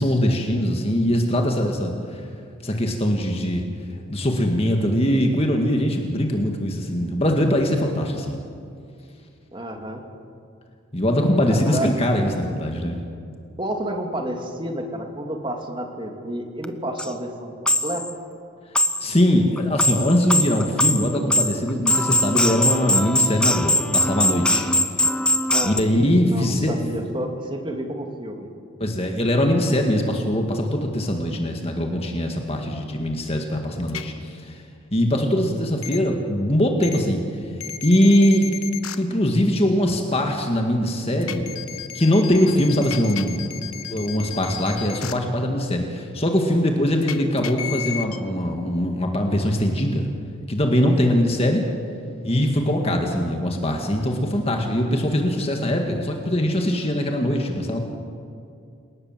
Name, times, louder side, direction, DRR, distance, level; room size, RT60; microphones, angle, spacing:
voice 1, 0.0-2.3 2.6-3.6 4.1-8.4 10.9-13.0 19.0-24.7 25.6-26.7 28.8-34.6 34.9-37.5 37.8-38.5 39.0-41.5 41.9-43.5 43.9-50.1 50.5-51.6 52.2-57.8, equal, 25° left, 2 dB, 1.9 m, -22 dB
voice 2, 9.5-10.0 11.5-11.9 13.6-18.1 25.4-25.8 26.2-28.5, right 1 dB, 20° right, 3 dB, 2.4 m, -30 dB
sound 1, 16.6-16.7 17.0-17.1 17.7-18.1 18.7-19.2 19.6-25.8, left 1 dB, 5° left, 0.8 m, -21 dB
sound 2, 33.9-34.0 35.8-36.0 36.8-37.0 37.6-39.0 41.2-45.1 47.0-48.2, left 10 dB, 80° left, 1.4 m, -33 dB
28.5 x 19.0 x 7.4 m, 2.4 s
head